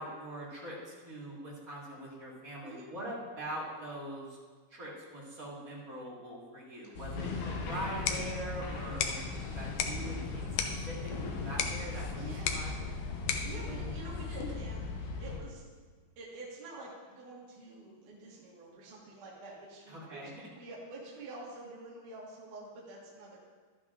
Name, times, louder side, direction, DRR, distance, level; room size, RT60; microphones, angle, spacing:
voice 1, 0.0-4.4 4.7-9.2 9.5-10.5 10.8-12.2 12.5-12.7 19.9-20.5, right 1 dB, 35° right, -6 dB, 1.5 m, -43 dB
sound 1, 6.9-15.4, left 3 dB, 75° left, 3.0 m, -38 dB
voice 2, 6.9-7.3 11.8-12.9 13.3-15.6 16.2-20.2 20.5-23.4, right 2 dB, 60° right, -5 dB, 2.8 m, -48 dB
sound 2, 7.7-14.7, left 6 dB, 90° left, 1.8 m, -38 dB
12.0 x 11.5 x 2.5 m, 1.5 s
omnidirectional pair, 4.8 m